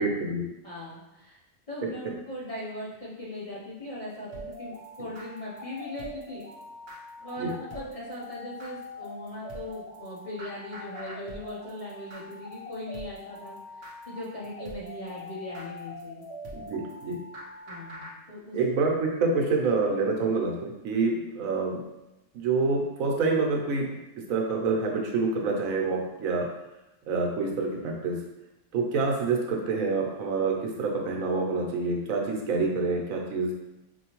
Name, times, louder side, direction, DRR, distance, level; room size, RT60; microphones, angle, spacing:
voice 1, 0.0-0.4 5.0-5.1 7.4-7.5 16.5-17.2 18.5-21.8 22.3-24.0 24.3-26.5 27.1-28.2 28.7-33.5, right 3 dB, 80° right, 0 dB, 1.1 m, -27 dB
voice 2, 0.6-1.4 1.7-6.4 7.2-16.3 17.7-18.6, left 1 dB, 35° left, -7 dB, 0.6 m, -39 dB
sound 1, 4.3-18.1, left 1 dB, 55° right, 0.8 m, -43 dB
4.4 x 2.7 x 2.9 m, 0.95 s
omnidirectional pair, 1.4 m